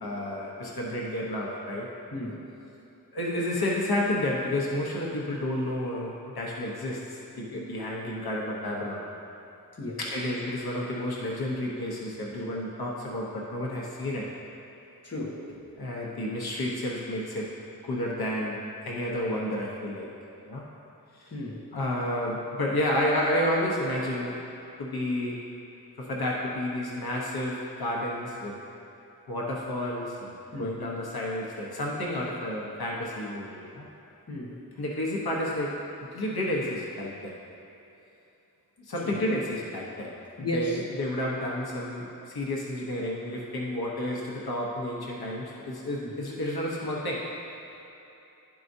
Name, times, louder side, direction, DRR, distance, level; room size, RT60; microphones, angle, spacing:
voice 1, 0.0-1.9 3.1-9.0 10.0-14.3 15.8-17.5 17.8-20.1 20.4-20.6 21.1-21.3 21.7-24.4 24.8-25.4 26.0-28.6 29.3-33.8 34.8-35.8 36.1-37.3 38.8-47.3, left 1 dB, 85° left, -3 dB, 1.0 m, -31 dB
voice 2, 2.1-2.5 9.8-10.0 15.0-15.4 21.3-21.6 30.5-30.7 34.3-34.6 39.0-39.2 40.4-40.9 46.0-46.1, left 1 dB, 45° left, -4 dB, 1.2 m, -34 dB
12.0 x 4.8 x 2.7 m, 3.0 s
wide cardioid pair, 75°, 36 cm